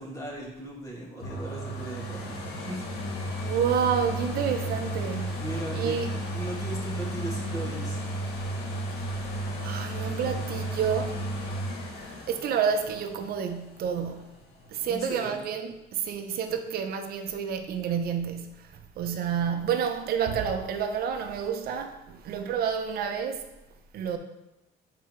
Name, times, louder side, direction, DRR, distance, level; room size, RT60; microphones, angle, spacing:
voice 1, 0.0-2.8 3.5-3.7 5.4-6.0 6.3-8.0 14.9-15.4 19.2-19.5, right 1 dB, 20° left, 2.0 m, -38 dB
sound 1, 1.2-14.9 15.4-15.5, right 1 dB, 80° left, 1.3 m, -34 dB
voice 2, 3.4-5.3 5.7-6.1 9.6-11.2 12.0-14.4 14.7-23.5 23.9-24.2, right 7 dB, 65° right, 0.6 m, -29 dB
7.6 x 4.5 x 3.1 m
cardioid pair, 110°, 17 cm